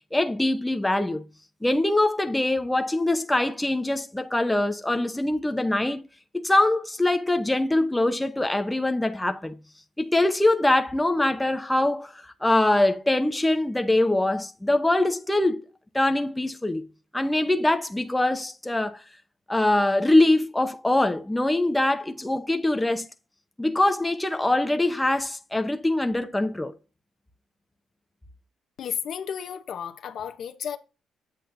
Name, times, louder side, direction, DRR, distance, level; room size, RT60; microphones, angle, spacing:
voice 1, 0.1-1.2 1.6-6.0 6.3-9.6 10.0-15.6 15.9-16.8 17.1-19.0 19.5-23.1 23.6-26.7, left 1 dB, 10° left, 0.7 m, -23 dB
voice 2, 28.8-30.8, left 8 dB, 65° left, 0.8 m, -33 dB
8.5 x 7.4 x 2.6 m
cardioid pair, 100°, 0 cm